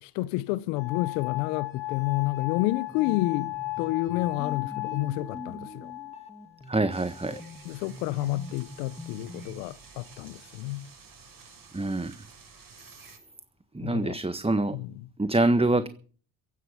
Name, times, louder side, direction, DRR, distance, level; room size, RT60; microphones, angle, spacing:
voice 1, 0.0-5.9 7.6-10.9 13.8-14.2 14.7-15.1, left 17 dB, 85° left, 0.8 m, -30 dB
sound 1, 0.8-7.7 8.5-9.1, left 21 dB, 70° left, 5.2 m, -36 dB
sound 2, 2.9-9.7, left 1 dB, 15° left, 1.9 m, -44 dB
voice 2, 6.7-7.4 11.7-12.2 13.7-14.8 15.2-15.9, right 2 dB, 10° right, 1.5 m, -25 dB
sound 3, 6.9-13.2, right 5 dB, 40° right, 6.9 m, -51 dB
16.0 x 11.0 x 7.4 m
hypercardioid pair, 55°, 49 cm